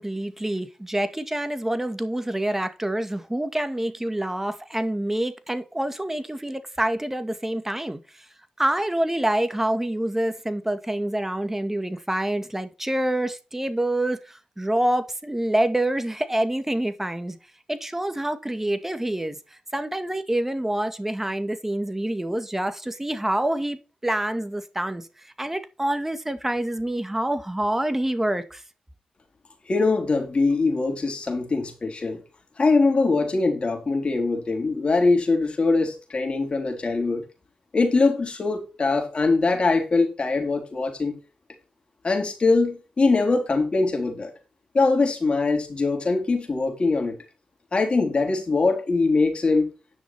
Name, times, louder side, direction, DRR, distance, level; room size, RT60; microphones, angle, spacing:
voice 1, 0.0-8.0 8.6-17.4 17.7-19.4 19.7-25.0 25.4-28.6, right 1 dB, 15° right, 2.1 m, -26 dB
voice 2, 29.7-32.2 32.6-37.2 37.7-41.1 42.0-44.3 44.7-47.2 47.7-49.7, left 3 dB, 50° left, 3.9 m, -22 dB
10.5 x 6.3 x 4.5 m
cardioid pair, 50°, 2 cm